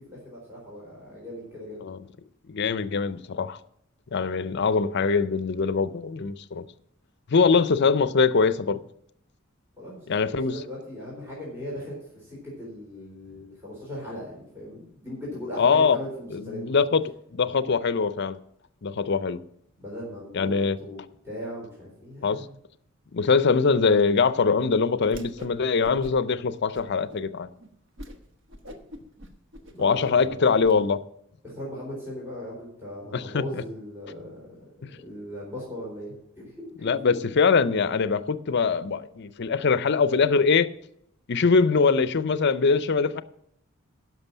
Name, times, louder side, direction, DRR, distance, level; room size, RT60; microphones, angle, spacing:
voice 1, 0.0-1.8 9.8-16.6 19.8-20.5 20.8-22.5 28.7-28.8 29.7-30.4 31.4-37.1, left 1 dB, 10° right, 4.0 m, -39 dB
voice 2, 2.5-3.6 4.1-6.6 7.3-8.8 10.1-10.6 15.6-16.0 16.3-17.0 17.3-18.4 18.8-19.4 20.3-20.8 22.2-22.4 23.1-27.5 29.8-31.0 33.1-33.4 36.8-40.7 41.3-43.2, left 5 dB, 55° left, 0.5 m, -22 dB
Whoosh swoosh swish, 25.0-25.6 25.8-26.3 26.7-27.2 27.6-27.7 28.0-28.2 28.5-30.7, equal, 65° right, 1.3 m, -43 dB
11.0 x 6.1 x 7.1 m
head